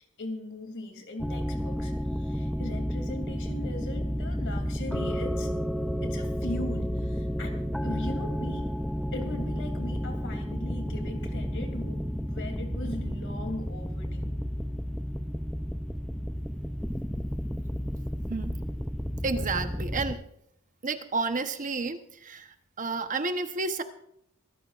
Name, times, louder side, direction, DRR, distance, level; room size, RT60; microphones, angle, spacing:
voice 1, 0.2-5.5 6.0-8.7 9.1-14.3, left 2 dB, 60° left, 4 dB, 3.0 m, -39 dB
sound 1, 1.2-20.1, equal, ahead, 0.5 m, -31 dB
voice 2, 19.2-20.2 20.8-23.8, right 3 dB, 35° right, 8 dB, 1.0 m, -31 dB
24.0 x 14.0 x 2.5 m, 0.72 s
head